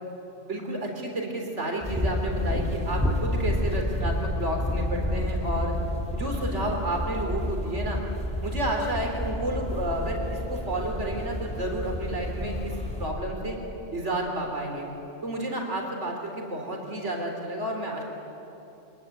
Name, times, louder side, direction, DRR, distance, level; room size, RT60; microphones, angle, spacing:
voice 1, 0.4-5.8 6.1-8.0 8.4-13.6 13.9-14.9 15.2-18.0, right 1 dB, 65° right, 1 dB, 4.0 m, -31 dB
sound 1, 1.8-13.1, left 1 dB, 5° left, 3.6 m, -30 dB
25.0 x 22.0 x 9.8 m, 3.0 s
omnidirectional pair, 1.3 m